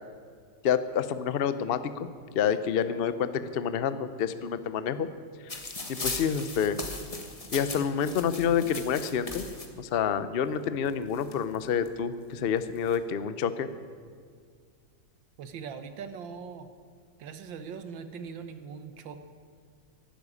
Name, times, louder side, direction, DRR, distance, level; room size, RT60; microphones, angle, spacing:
voice 1, 0.6-5.1 5.5-5.6 5.9-6.8 7.5-9.5 9.8-13.7, left 7 dB, 65° left, 12 dB, 0.5 m, -28 dB
sound 1, 5.5-9.7 10.6-10.7 10.9-11.9 12.6-13.0, left 2 dB, 20° left, 1.3 m, -38 dB
voice 2, 15.4-16.7 17.2-19.2, right 6 dB, 85° right, 10 dB, 1.7 m, -41 dB
12.0 x 11.5 x 9.9 m, 2.1 s
omnidirectional pair, 2.0 m